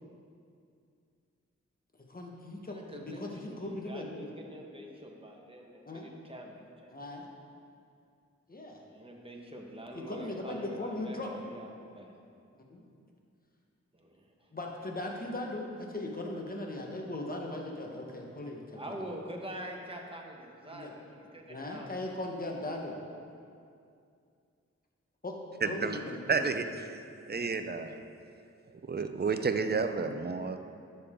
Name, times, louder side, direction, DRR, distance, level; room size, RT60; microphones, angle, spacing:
voice 1, 2.1-4.3 5.8-6.1 6.9-7.2 8.5-8.8 10.1-11.3 12.7-12.8 14.5-19.0 20.7-20.9 21.5-22.9 25.2-25.4 25.6-26.5 27.3-27.5, left 2 dB, 30° left, 0 dB, 1.4 m, -38 dB
voice 2, 2.7-6.9 8.9-12.1 13.9-14.5 18.7-21.9, right 1 dB, 20° right, 0 dB, 1.4 m, -45 dB
voice 3, 25.6-26.0 26.3-26.9 27.3-28.0 28.9-30.6, right 4 dB, 35° right, 8 dB, 0.6 m, -31 dB
11.5 x 7.0 x 3.8 m, 2.4 s
wide cardioid pair, 60°, 29 cm